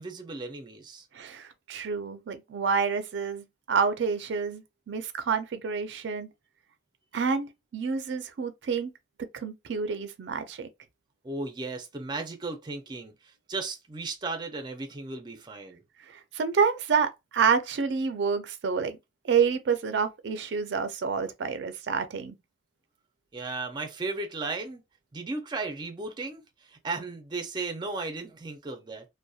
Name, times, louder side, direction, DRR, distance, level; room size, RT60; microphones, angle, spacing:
voice 1, 0.0-1.1 11.2-15.8 23.3-24.8 25.1-29.1, right 3 dB, 25° right, 0.4 m, -35 dB
voice 2, 1.1-6.3 7.1-8.9 9.3-10.7 16.3-19.0 19.2-22.4, right 6 dB, 85° right, 0.4 m, -28 dB
2.6 x 2.1 x 2.3 m
head